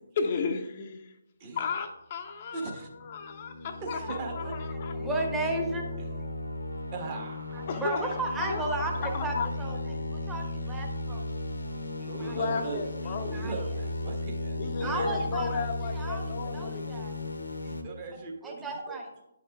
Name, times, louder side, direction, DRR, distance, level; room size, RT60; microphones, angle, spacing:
voice 1, 0.2-1.1 1.5-5.1 7.7-8.1 8.4-8.7 9.1-9.5 12.2-13.4 14.6-17.1, left 5 dB, 35° left, 5 dB, 0.7 m, -34 dB
voice 2, 2.5-2.9 3.8-4.5 6.0-6.1 6.9-7.6 12.0-12.8 13.2-15.1 17.6-19.0, right 4 dB, 30° right, 0 dB, 1.5 m, -39 dB
sound 1, 2.6-17.8, left 2 dB, 75° left, 1.0 m, -35 dB
voice 3, 4.9-5.8 6.1-6.3 7.5-11.3 12.0-12.4 13.3-13.6 14.8-15.7 15.9-17.2 18.4-19.1, right 2 dB, 10° right, 0 dB, 1.1 m, -34 dB
11.5 x 5.9 x 2.4 m, 0.87 s
figure-of-eight pair, 145°, 0 cm